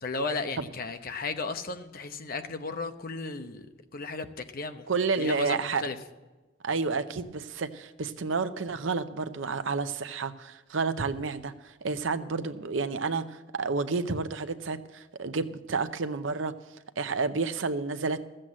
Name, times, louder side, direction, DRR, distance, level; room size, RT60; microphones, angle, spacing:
voice 1, 0.0-3.7 3.9-4.9 5.2-6.0, left 3 dB, 50° left, 0.8 m, -34 dB
voice 2, 4.9-5.8 6.6-16.5 17.0-18.2, right 4 dB, 80° right, 0.7 m, -30 dB
13.5 x 7.7 x 7.5 m
head